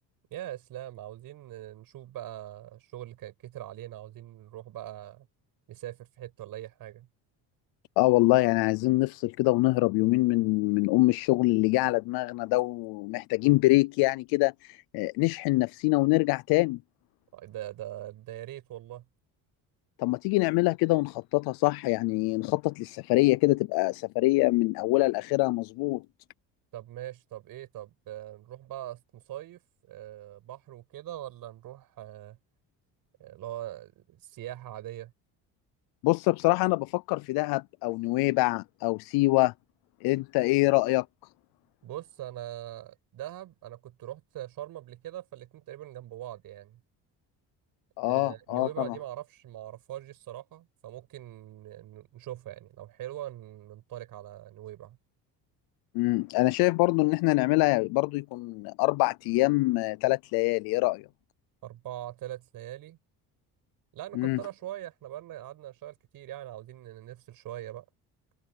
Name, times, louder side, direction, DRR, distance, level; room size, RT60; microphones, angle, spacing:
voice 1, 0.3-5.3 5.7-7.1 17.3-19.0 26.7-29.6 29.9-32.4 33.2-35.1 41.8-46.8 48.0-55.0 61.6-63.0 63.9-67.9, right 13 dB, 65° right, 7.2 m, -42 dB
voice 2, 8.0-16.8 20.0-26.0 36.0-39.5 40.0-41.1 48.0-49.0 55.9-61.1 64.2-64.4, left 22 dB, 80° left, 0.6 m, -25 dB
cardioid pair, 110°, 38 cm